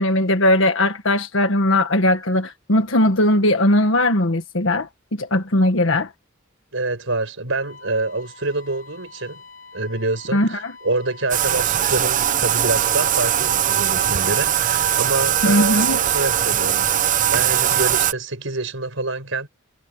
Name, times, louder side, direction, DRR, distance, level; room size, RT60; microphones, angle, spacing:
voice 1, 0.0-6.1 10.3-10.7 15.4-16.0, left 1 dB, 70° left, 1.6 m, -19 dB
voice 2, 6.7-9.4 9.7-16.9 17.3-19.5, right 2 dB, 75° right, 5.2 m, -26 dB
Wind instrument woodwind instrument, 7.5-12.6, left 4 dB, 40° left, 6.1 m, -45 dB
Bathtub (filling or washing), 11.3-18.1, right 10 dB, 40° right, 0.6 m, -20 dB
head